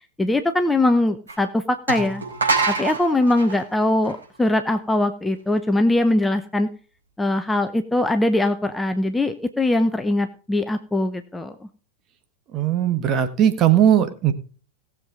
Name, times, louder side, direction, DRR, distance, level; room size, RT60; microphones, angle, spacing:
voice 1, 0.2-2.2 2.7-6.7 7.2-11.7, left 1 dB, 5° left, 8 dB, 0.9 m, -21 dB
sound 1, 1.3-1.4 1.9-4.7, right 3 dB, 75° right, 5.0 m, -25 dB
voice 2, 12.5-14.3, right 10 dB, 30° right, 9 dB, 1.5 m, -18 dB
18.5 x 7.6 x 3.8 m, 0.39 s
figure-of-eight pair, 90°, 0 cm